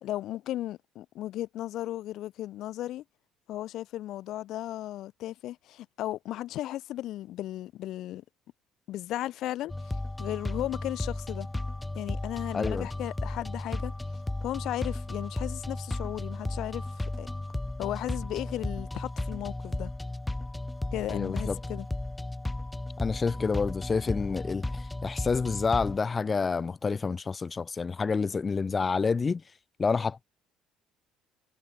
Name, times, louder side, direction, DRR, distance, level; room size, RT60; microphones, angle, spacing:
voice 1, 0.0-3.0 3.5-8.2 8.9-11.5 12.0-13.9 14.4-17.3 17.8-19.9 20.9-21.9, left 14 dB, 65° left, 0.7 m, -35 dB
sound 1, 9.7-26.0, left 2 dB, 10° left, 1.6 m, -34 dB
voice 2, 12.5-12.9 21.1-21.6 23.0-29.4 29.8-30.2, left 5 dB, 30° left, 0.9 m, -28 dB
supercardioid pair, 85°, 0 cm